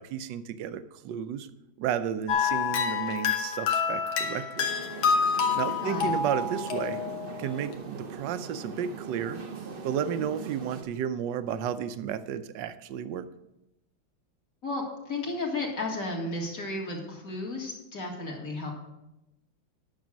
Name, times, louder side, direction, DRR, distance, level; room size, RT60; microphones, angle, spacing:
voice 1, 0.0-1.5 1.8-4.7 5.5-7.0 7.4-9.4 9.8-13.3, right 8 dB, 70° right, 12 dB, 1.2 m, -32 dB
sound 1, 2.3-7.4, left 6 dB, 80° left, 1.9 m, -28 dB
sound 2, 4.6-10.8, right 5 dB, 85° right, 0.4 m, -41 dB
voice 2, 5.8-6.1 14.6-18.7, left 2 dB, 45° left, 0 dB, 2.3 m, -33 dB
10.0 x 6.6 x 6.2 m, 0.91 s
omnidirectional pair, 2.2 m